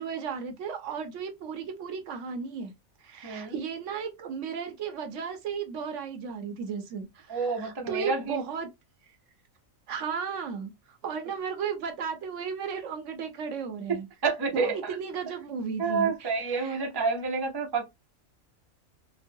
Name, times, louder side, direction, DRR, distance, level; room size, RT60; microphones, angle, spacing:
voice 1, 0.0-2.7 3.0-8.7 9.9-14.1 14.5-16.8, right 6 dB, 70° right, 0.9 m, -35 dB
voice 2, 3.2-3.6 7.3-8.4 13.9-14.7 15.8-17.8, right 4 dB, 30° right, 0.4 m, -29 dB
3.0 x 2.0 x 2.5 m
omnidirectional pair, 1.4 m